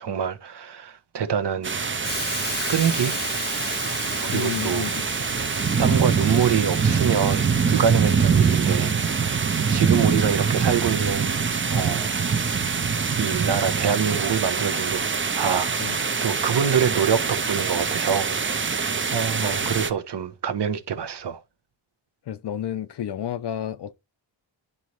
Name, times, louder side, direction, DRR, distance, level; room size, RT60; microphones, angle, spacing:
voice 1, 0.0-1.8 2.7-3.2 4.2-4.9 5.8-11.4 11.7-12.2 13.1-15.0 15.4-18.3 18.6-21.4, right 7 dB, 60° right, 1.0 m, -25 dB
sound 1, 1.6-19.9, right 6 dB, 25° right, 0.5 m, -24 dB
Hiss, 2.0-11.9, left 3 dB, 20° left, 0.9 m, -37 dB
voice 2, 4.3-5.0 15.8-16.0 19.4-20.0 22.3-23.9, left 10 dB, 60° left, 0.6 m, -31 dB
11.0 x 4.1 x 3.0 m
wide cardioid pair, 145°, 48 cm